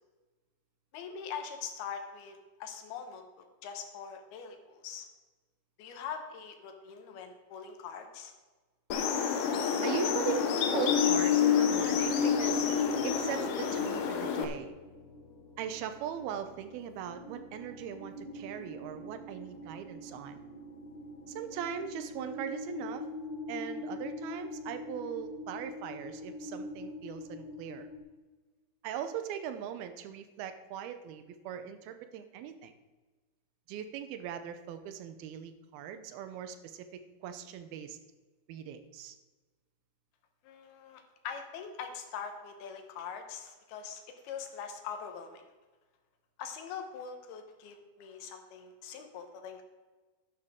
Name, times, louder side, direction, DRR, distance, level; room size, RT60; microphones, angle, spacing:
voice 1, 0.9-5.1 5.8-8.3 40.4-45.5 46.4-49.6, left 7 dB, 85° left, 5 dB, 3.1 m, -43 dB
sound 1, 8.9-14.5, left 7 dB, 70° left, 2.2 m, -28 dB
voice 2, 9.8-12.7 13.0-14.7 15.6-20.4 21.3-23.1 23.5-27.9 28.8-32.7 33.7-38.0 38.5-39.2, right 8 dB, 85° right, 9 dB, 2.7 m, -40 dB
sound 2, 11.7-28.0, left 1 dB, 45° left, 1.7 m, -44 dB
11.5 x 11.0 x 3.7 m, 1.3 s
omnidirectional pair, 4.4 m